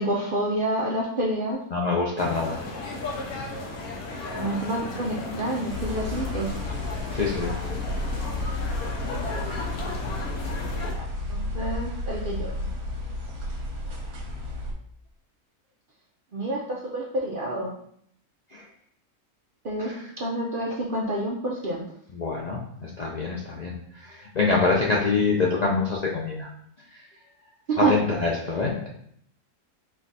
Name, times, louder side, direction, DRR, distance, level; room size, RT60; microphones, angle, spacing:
voice 1, 0.0-1.6 4.4-6.5 10.9-12.5 16.3-17.7 19.6-21.8 27.7-28.0, right 2 dB, 55° right, -3 dB, 0.6 m, -28 dB
voice 2, 1.7-2.6 7.1-7.5 18.5-18.7 19.8-20.0 22.1-26.5 26.9-27.0 27.8-28.9, left 4 dB, 55° left, -3 dB, 0.4 m, -25 dB
sound 1, 2.2-10.9, left 2 dB, 90° left, 1.3 m, -35 dB
sound 2, 5.7-14.7, left 2 dB, 90° right, 1.4 m, -32 dB
4.5 x 2.4 x 4.0 m, 0.67 s
omnidirectional pair, 1.5 m